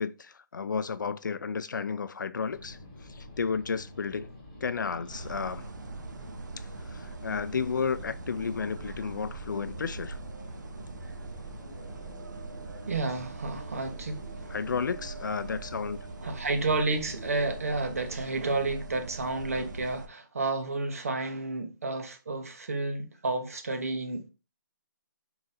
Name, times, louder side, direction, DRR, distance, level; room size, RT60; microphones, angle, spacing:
voice 1, 0.0-4.3 4.6-5.7 6.6-10.2 14.5-16.0, left 5 dB, 65° left, 0.4 m, -32 dB
sound 1, 2.5-18.7, left 1 dB, 25° left, 0.9 m, -48 dB
sound 2, 5.1-20.1, right 4 dB, 60° right, 0.4 m, -42 dB
voice 2, 12.8-14.6 16.2-24.3, right 3 dB, 45° right, 0.8 m, -31 dB
3.8 x 2.5 x 4.0 m
hypercardioid pair, 180°, 11 cm